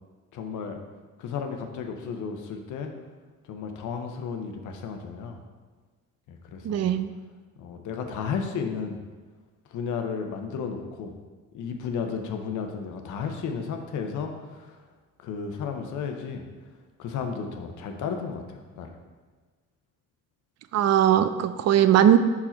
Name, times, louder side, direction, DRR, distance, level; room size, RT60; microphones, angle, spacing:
voice 1, 0.3-0.8 1.2-2.9 3.4-5.4 6.3-6.9 7.6-9.0 9.7-11.1 11.5-14.8 15.2-16.4 17.0-18.9, left 6 dB, 80° left, 5 dB, 0.8 m, -33 dB
voice 2, 6.6-7.1 20.7-22.2, right 10 dB, 60° right, 11 dB, 0.5 m, -19 dB
5.6 x 4.8 x 4.4 m, 1.3 s
cardioid pair, 90°, 30 cm